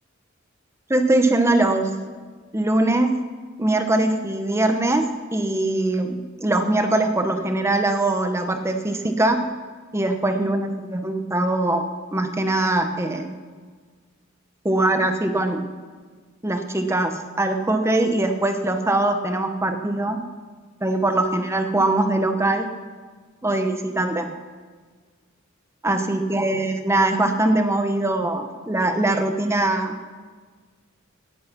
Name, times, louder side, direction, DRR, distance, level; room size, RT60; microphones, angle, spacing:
voice 1, 0.9-2.0 2.5-3.2 3.6-9.5 9.9-13.3 14.6-15.7 16.4-20.2 20.8-22.7 23.4-24.4 25.8-30.0, right 2 dB, 15° right, 6 dB, 1.0 m, -22 dB
16.5 x 10.5 x 5.9 m, 1.5 s
head